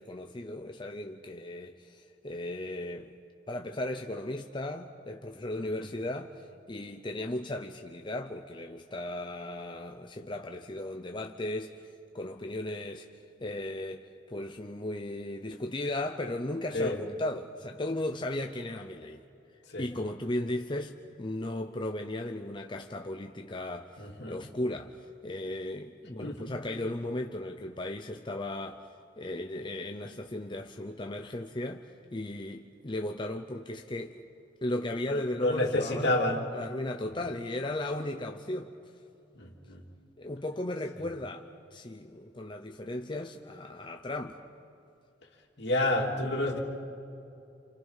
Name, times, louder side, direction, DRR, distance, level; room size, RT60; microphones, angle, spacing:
voice 1, 0.0-3.2 3.5-11.9 12.1-19.2 19.8-28.9 29.2-34.2 34.6-36.1 36.5-38.7 40.2-41.5 41.7-44.4, left 1 dB, 25° left, 4 dB, 0.7 m, -36 dB
voice 2, 24.0-24.4 26.2-26.5 35.1-36.4 39.3-39.8 45.6-46.6, left 1 dB, 65° left, 0 dB, 2.9 m, -29 dB
28.5 x 28.5 x 5.7 m, 2.7 s
head